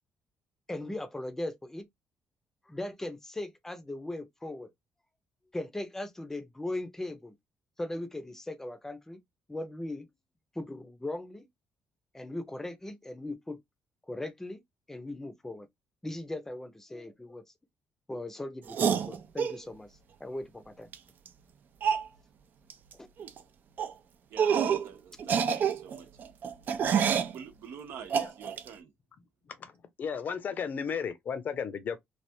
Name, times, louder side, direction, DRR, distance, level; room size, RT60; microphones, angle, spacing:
voice 1, 0.7-1.9 2.7-4.7 5.5-7.3 7.8-9.2 9.5-10.1 10.5-11.5 12.1-13.6 14.1-14.6 14.9-15.7 16.0-17.4 18.1-19.9 20.2-20.9 22.9-23.1, left 1 dB, 10° left, 0.6 m, -38 dB
sound 1, 18.7-19.6 20.9-21.0 21.3-21.4 21.8-22.1 22.7-22.9 23.2-23.4 23.8-23.9 24.4-24.9 25.2-27.3 28.1-28.7, right 7 dB, 50° right, 0.5 m, -27 dB
voice 2, 24.3-26.1 26.8-28.9, right 7 dB, 75° right, 0.8 m, -47 dB
voice 3, 30.0-32.0, left 6 dB, 45° left, 0.7 m, -34 dB
3.3 x 2.4 x 2.7 m
cardioid pair, 130°, 4 cm